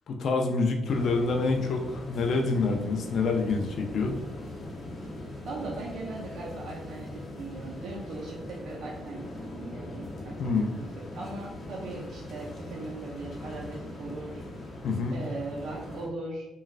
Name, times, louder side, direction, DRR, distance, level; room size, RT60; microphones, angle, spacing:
voice 1, 0.1-4.2 10.4-10.7 14.8-15.2, left 3 dB, 60° left, 3 dB, 0.4 m, -27 dB
sound 1, 0.8-16.1, left 1 dB, 40° left, 0.7 m, -41 dB
voice 2, 5.4-9.2 9.5-10.9 11.1-14.4 15.1-16.5, right 2 dB, 70° right, -3 dB, 0.5 m, -39 dB
3.0 x 2.3 x 2.4 m, 0.97 s
cardioid pair, 90°, 0 cm